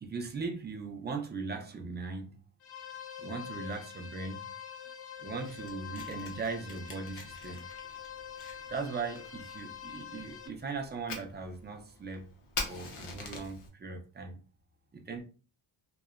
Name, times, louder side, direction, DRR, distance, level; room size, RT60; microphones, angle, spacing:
voice 1, 0.0-2.4 3.2-4.5 5.2-7.7 8.7-12.3 12.7-14.4 14.9-15.2, right 4 dB, 25° right, 0.4 m, -39 dB
sound 1, 2.6-10.5, left 8 dB, 55° left, 0.5 m, -45 dB
Fire, 5.3-13.7, left 4 dB, 85° left, 0.8 m, -45 dB
2.8 x 2.0 x 2.4 m
wide cardioid pair, 110°, 49 cm